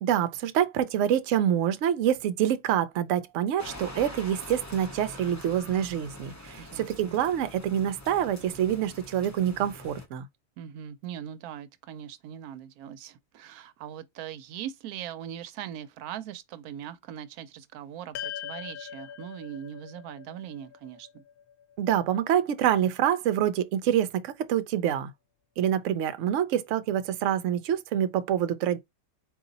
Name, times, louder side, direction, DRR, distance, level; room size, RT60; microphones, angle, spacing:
voice 1, 0.0-10.3 21.8-25.1 25.6-28.8, right 10 dB, 65° right, 0.9 m, -26 dB
Nature - Rain storm roadside ambience, 3.6-10.1, left 1 dB, 20° left, 0.4 m, -44 dB
voice 2, 6.6-7.2 10.6-21.2, right 10 dB, 90° right, 1.1 m, -41 dB
sound 1, 18.1-22.6, left 10 dB, 80° left, 1.1 m, -42 dB
4.0 x 2.6 x 3.8 m
omnidirectional pair, 1.5 m